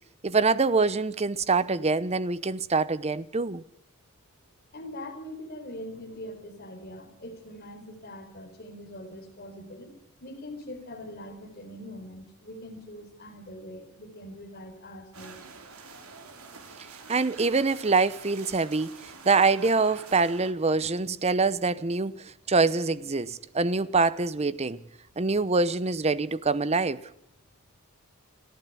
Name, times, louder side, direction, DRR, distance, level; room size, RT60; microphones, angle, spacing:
voice 1, 0.2-3.6 17.1-24.8 25.2-27.0, right 4 dB, 30° right, 0.8 m, -25 dB
voice 2, 4.7-9.9 10.2-15.4 19.2-19.3 20.8-20.9, left 1 dB, 45° left, 4.4 m, -42 dB
sound 1, 15.1-20.5, right 4 dB, 90° right, 3.2 m, -47 dB
30.0 x 10.5 x 9.7 m
head